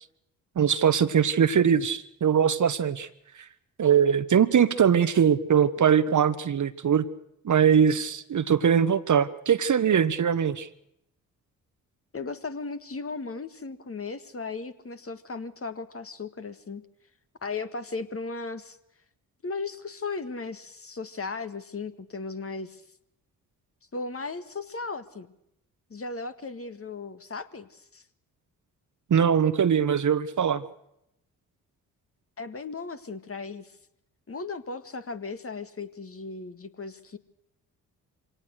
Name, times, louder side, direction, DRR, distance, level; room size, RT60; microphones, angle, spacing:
voice 1, 0.5-3.1 3.8-7.0 7.4-10.7 29.1-30.6, right 8 dB, 45° right, 13 dB, 1.3 m, -22 dB
voice 2, 12.1-16.8 17.4-18.8 19.4-22.8 23.9-25.3 25.9-28.0 32.4-33.8 34.3-37.2, left 4 dB, 35° left, 9 dB, 1.9 m, -36 dB
25.0 x 18.0 x 6.5 m, 0.79 s
hypercardioid pair, 45°, 42 cm